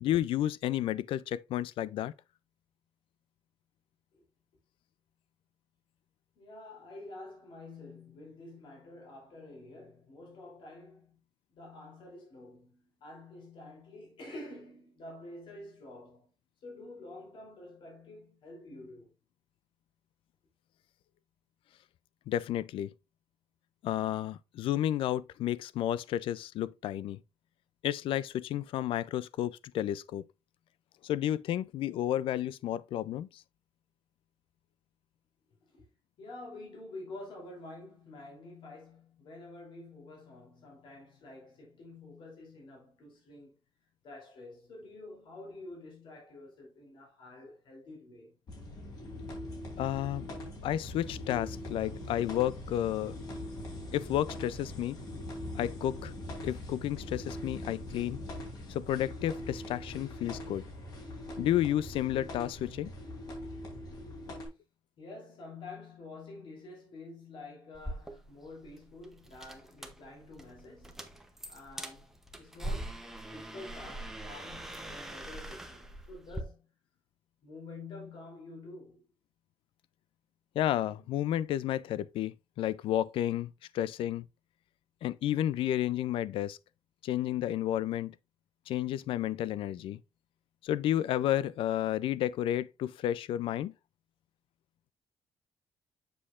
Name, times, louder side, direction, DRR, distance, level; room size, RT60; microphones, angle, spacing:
voice 1, 0.0-2.1 22.3-22.9 23.8-27.2 27.8-30.2 31.0-33.4 49.8-50.3 50.6-53.1 53.9-55.0 55.5-56.1 56.4-58.2 58.7-60.7 61.4-62.9 80.6-84.2 85.0-86.6 87.0-88.1 88.7-90.0 90.6-93.7, left 12 dB, 90° left, 0.4 m, -31 dB
voice 2, 6.3-11.2 11.5-16.3 16.6-19.1 35.6-35.9 36.2-43.6 44.0-48.4 64.5-64.6 65.0-71.2 71.5-76.8 77.4-79.1, left 2 dB, 65° left, 3.1 m, -48 dB
sound 1, 48.5-64.5, left 1 dB, 50° left, 3.3 m, -42 dB
sound 2, 67.7-76.4, right 1 dB, 5° right, 0.8 m, -43 dB
7.6 x 6.5 x 2.4 m
cardioid pair, 165°, 9 cm